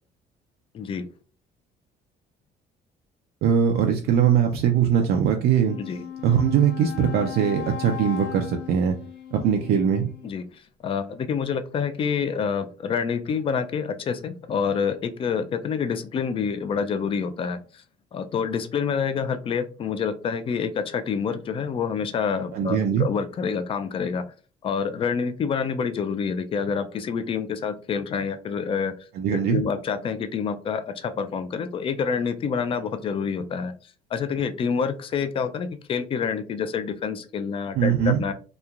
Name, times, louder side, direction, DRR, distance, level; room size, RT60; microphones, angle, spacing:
voice 1, 0.7-1.1 5.8-6.0 10.2-17.8 18.1-24.3 24.6-28.9 29.3-33.7 34.1-38.3, left 6 dB, 35° left, 10 dB, 0.3 m, -27 dB
voice 2, 3.4-5.8 6.2-9.0 9.3-10.1 22.5-23.1 29.2-29.6 37.7-38.2, right 8 dB, 70° right, 3 dB, 0.4 m, -21 dB
Wind instrument woodwind instrument, 5.5-10.4, left 10 dB, 90° left, 1.1 m, -37 dB
3.0 x 2.2 x 2.3 m, 0.37 s
cardioid pair, 110°, 17 cm